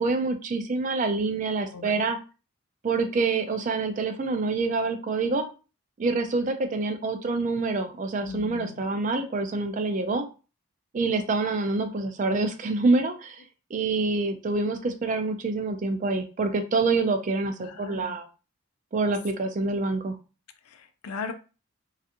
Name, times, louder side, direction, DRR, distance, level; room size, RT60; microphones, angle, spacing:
voice 1, 0.0-2.2 2.8-5.5 6.0-10.3 10.9-13.4 13.7-18.3 18.9-20.2, right 3 dB, 35° right, 7 dB, 0.3 m, -26 dB
voice 2, 1.7-2.0 8.2-8.8 17.6-18.2 20.6-21.3, left 5 dB, 80° left, 8 dB, 0.4 m, -38 dB
2.7 x 2.3 x 2.5 m, 0.34 s
head